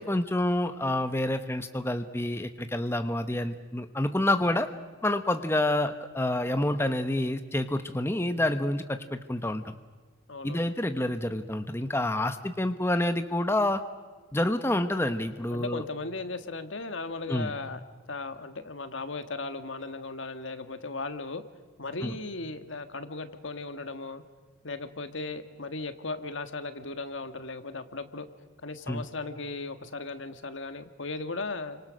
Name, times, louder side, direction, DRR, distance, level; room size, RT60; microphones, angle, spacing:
voice 1, 0.0-4.7 5.0-9.7 10.4-13.8 14.3-15.8 17.3-17.5 22.0-22.1 28.9-29.0, left 1 dB, 10° left, 8 dB, 0.9 m, -28 dB
voice 2, 10.3-10.7 15.5-17.8 18.1-21.4 21.8-24.2 24.6-28.3 28.6-31.8, left 3 dB, 70° left, 9 dB, 1.6 m, -37 dB
29.5 x 26.0 x 6.4 m, 1.4 s
head